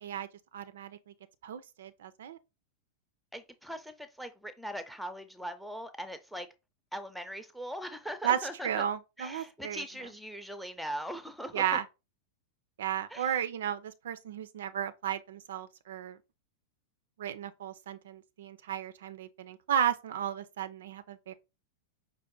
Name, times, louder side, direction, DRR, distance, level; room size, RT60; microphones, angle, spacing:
voice 1, 0.5-1.0 1.4-2.4 8.2-8.4 8.6-9.8 11.5-11.8 12.8-16.2 17.2-21.3, right 9 dB, 60° right, 0.3 m, -34 dB
voice 2, 3.3-6.5 6.9-8.9 9.2-11.7 13.1-13.3, equal, ahead, 0.5 m, -40 dB
5.2 x 2.1 x 3.6 m
figure-of-eight pair, 90°, 0 cm